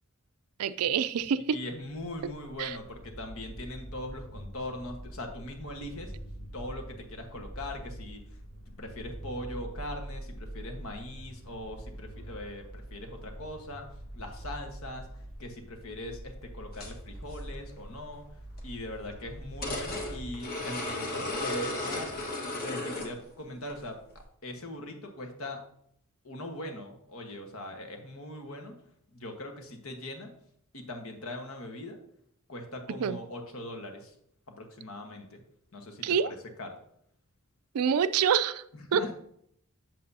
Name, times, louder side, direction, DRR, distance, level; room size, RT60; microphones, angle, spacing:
voice 1, 0.6-1.6 2.6-2.8 33.0-33.2 36.0-36.3 37.7-38.6 38.9-39.1, right 7 dB, 80° right, 0.4 m, -26 dB
voice 2, 1.5-6.1 6.5-8.4 8.8-13.9 14.1-15.1 15.4-22.3 22.6-24.0 24.4-25.6 26.2-28.7 29.1-30.3 30.7-32.0 32.5-34.1 34.6-35.4 35.7-36.8 38.7-39.1, left 1 dB, 70° left, 1.3 m, -41 dB
sound 1, 2.1-20.3, right 1 dB, 90° left, 2.3 m, -44 dB
sound 2, 16.7-16.9 17.3-17.4 18.6-18.7 19.6-23.3 23.7-23.8 24.2-24.3, left 2 dB, 40° left, 1.4 m, -34 dB
7.6 x 7.4 x 2.7 m
head